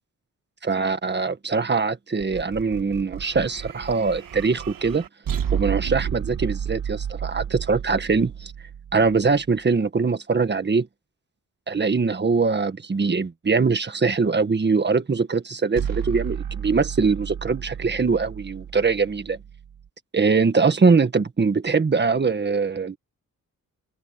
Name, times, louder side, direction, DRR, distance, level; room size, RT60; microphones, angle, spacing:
voice 1, 0.6-5.0 5.5-8.5 8.9-10.9 11.7-19.4 20.1-23.0, right 4 dB, 30° right, 1.6 m, -22 dB
sound 1, 2.2-9.5 15.8-19.9, right 8 dB, 75° right, 1.4 m, -32 dB
open air
wide cardioid pair, 160°, 33 cm